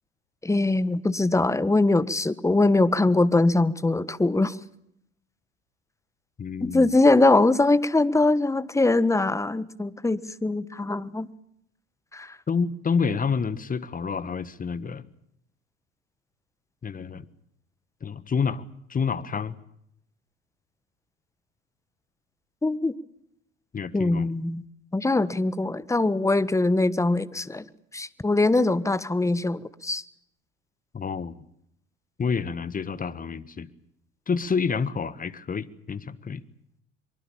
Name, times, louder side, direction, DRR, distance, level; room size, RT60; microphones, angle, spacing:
voice 1, 0.4-4.6 6.6-11.3 12.1-12.3 22.6-22.9 23.9-24.6 24.9-27.6 27.9-30.0, left 2 dB, 10° left, 17 dB, 1.4 m, -22 dB
voice 2, 6.4-6.9 12.5-15.0 16.8-17.3 18.0-18.6 18.9-19.6 23.7-24.3 30.9-31.3 32.2-33.7 34.3-36.4, left 5 dB, 25° left, 17 dB, 1.6 m, -28 dB
24.0 x 24.0 x 7.2 m, 0.75 s
hypercardioid pair, 70°, 35 cm